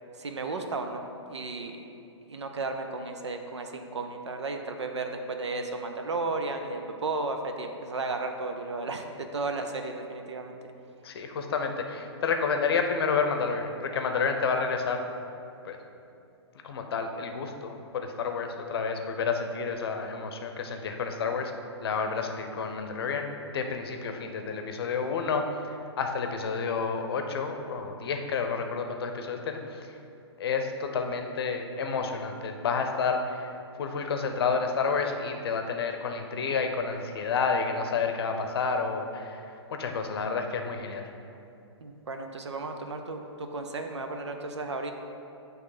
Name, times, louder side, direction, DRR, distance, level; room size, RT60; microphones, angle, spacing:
voice 1, 0.2-1.0 1.3-1.8 2.3-10.6 41.8-44.9, right 3 dB, 75° right, 5 dB, 0.6 m, -34 dB
voice 2, 11.0-15.0 15.6-15.8 16.6-21.5 21.8-25.4 26.0-29.9 30.4-33.5 33.8-39.4 39.7-41.0, left 5 dB, 60° left, 5 dB, 0.7 m, -30 dB
8.1 x 3.2 x 4.9 m, 2.7 s
figure-of-eight pair, 125°, 15 cm